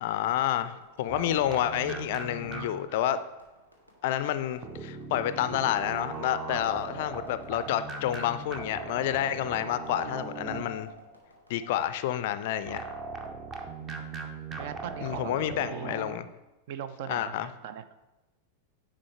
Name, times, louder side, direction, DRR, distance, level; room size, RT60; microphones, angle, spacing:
voice 1, 0.0-3.2 4.0-10.9 11.5-12.8 15.0-16.3 17.1-17.5, left 11 dB, 50° left, 12 dB, 0.3 m, -29 dB
sound 1, 0.7-12.2, left 2 dB, 85° right, 1.2 m, -53 dB
sound 2, 1.1-3.0 4.6-11.0 12.7-16.2, right 4 dB, 25° right, 0.7 m, -39 dB
voice 2, 14.6-16.0 16.7-17.8, right 9 dB, 50° right, 12 dB, 0.4 m, -40 dB
9.6 x 3.8 x 3.3 m, 1.0 s
figure-of-eight pair, 90°, 0 cm